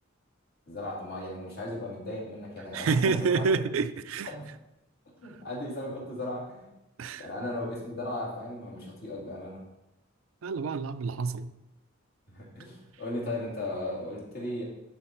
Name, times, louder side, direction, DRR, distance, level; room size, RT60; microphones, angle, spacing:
voice 1, 0.7-3.5 4.2-4.4 5.2-6.7 7.0-9.6 12.3-14.6, left 1 dB, 55° left, 2.4 m, -36 dB
voice 2, 2.7-4.3 7.0-7.3 10.4-11.5, right 4 dB, 90° right, 0.5 m, -28 dB
10.5 x 4.0 x 4.4 m
head